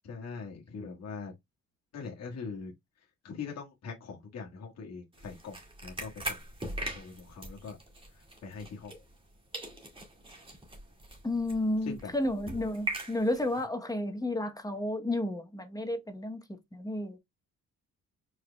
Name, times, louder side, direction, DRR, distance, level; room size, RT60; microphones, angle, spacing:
voice 1, 0.0-1.3 1.9-2.7 3.2-5.5 5.8-6.4 6.9-7.8 8.4-8.9 11.8-12.1, left 5 dB, 60° left, 1.6 m, -41 dB
sound 1, 5.1-9.3 9.5-13.6, right 2 dB, 20° right, 2.1 m, -41 dB
voice 2, 11.2-17.2, left 1 dB, 10° left, 0.9 m, -32 dB
4.7 x 4.6 x 2.2 m
cardioid pair, 90°, 30 cm